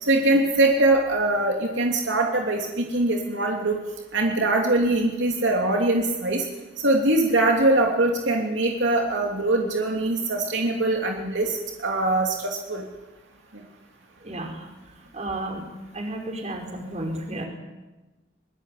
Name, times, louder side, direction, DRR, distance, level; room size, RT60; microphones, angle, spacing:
voice 1, 0.0-3.8 4.1-6.4 6.8-12.8 13.5-13.6, right 2 dB, 75° right, 1 dB, 2.9 m, -22 dB
voice 2, 14.2-14.7 15.1-15.6 15.9-17.5, right 1 dB, 35° right, 3 dB, 5.1 m, -32 dB
23.0 x 20.5 x 8.5 m, 1.1 s
head